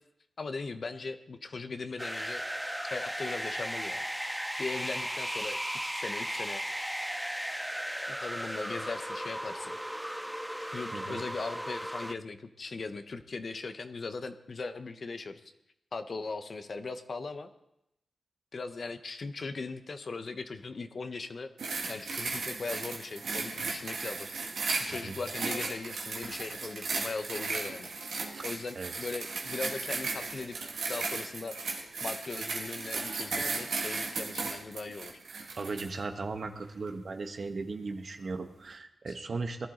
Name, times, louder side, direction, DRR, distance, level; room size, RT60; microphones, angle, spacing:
voice 1, 0.4-2.4 2.9-4.0 4.6-6.6 8.1-9.7 10.7-15.4 15.9-17.5 18.5-21.5 21.9-24.3 24.8-27.9 28.4-31.6 32.0-35.1 39.1-39.2, left 3 dB, 60° left, 8 dB, 1.0 m, -39 dB
sound 1, 2.0-12.1, equal, 5° right, 0.6 m, -36 dB
voice 2, 10.9-11.2 24.9-25.1 28.3-28.4 28.8-28.9 35.6-39.7, right 3 dB, 60° right, 6 dB, 1.3 m, -37 dB
sound 2, 21.6-35.9 36.6-36.7, right 3 dB, 80° right, 2.1 m, -36 dB
18.0 x 11.5 x 4.0 m, 0.84 s
supercardioid pair, 40°, 0 cm